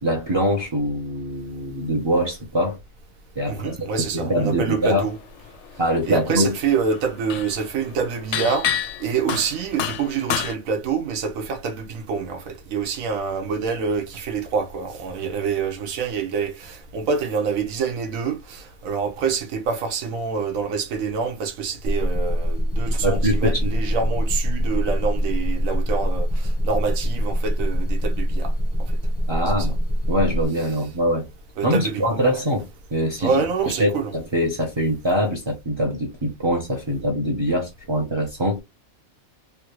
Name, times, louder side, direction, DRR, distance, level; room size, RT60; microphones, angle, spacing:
voice 1, 0.0-2.8 3.4-5.1 5.8-6.5 23.0-23.7 29.3-29.8 30.1-31.3 31.6-32.6 32.9-33.3 33.8-38.6, equal, 30° right, 0.6 m, -23 dB
voice 2, 3.5-5.2 6.1-28.5 29.3-29.7 30.7-30.8 31.6-32.4 33.2-34.1, right 5 dB, 75° right, 1.2 m, -26 dB
sound 1, 5.5-5.9 6.2-10.5, left 9 dB, 65° left, 0.8 m, -28 dB
sound 2, 21.8-30.5, equal, 20° left, 0.3 m, -23 dB
3.3 x 2.5 x 2.9 m
omnidirectional pair, 1.4 m